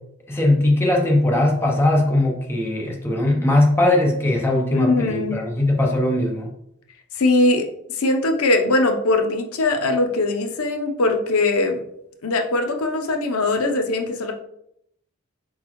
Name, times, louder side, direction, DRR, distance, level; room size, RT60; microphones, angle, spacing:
voice 1, 0.3-6.5, left 1 dB, 10° left, 0 dB, 0.6 m, -19 dB
voice 2, 4.7-5.4 7.2-7.7 7.9-11.8 12.2-14.3, left 2 dB, 85° left, 4 dB, 0.7 m, -21 dB
4.4 x 3.9 x 3.0 m, 0.74 s
head